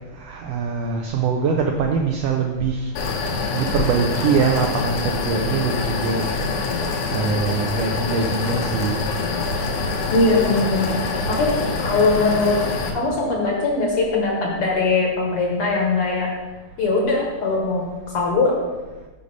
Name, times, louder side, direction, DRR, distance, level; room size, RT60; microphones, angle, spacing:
voice 1, 0.2-2.9 3.5-6.3 7.1-9.1, right 5 dB, 80° right, 2 dB, 1.4 m, -23 dB
sound 1, 3.0-12.9, left 4 dB, 85° left, 2.5 m, -25 dB
voice 2, 10.1-11.0 11.3-11.5 11.8-12.6 12.9-16.3 16.8-17.8 18.1-18.5, left 3 dB, 60° left, -1 dB, 1.6 m, -20 dB
6.7 x 5.1 x 5.3 m, 1.2 s
omnidirectional pair, 3.4 m